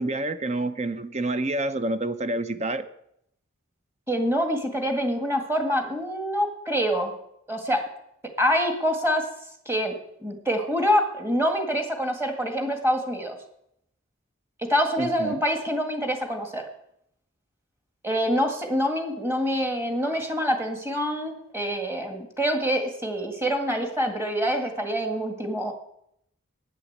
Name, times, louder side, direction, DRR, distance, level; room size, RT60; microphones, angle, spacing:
voice 1, 0.0-2.9 15.0-15.3, right 2 dB, 30° right, 11 dB, 0.7 m, -28 dB
voice 2, 4.1-7.1 7.5-7.8 8.4-9.3 9.7-10.0 10.2-13.4 14.6-16.6 18.0-25.7, equal, 10° right, 4 dB, 1.8 m, -26 dB
11.0 x 9.8 x 8.0 m, 0.76 s
head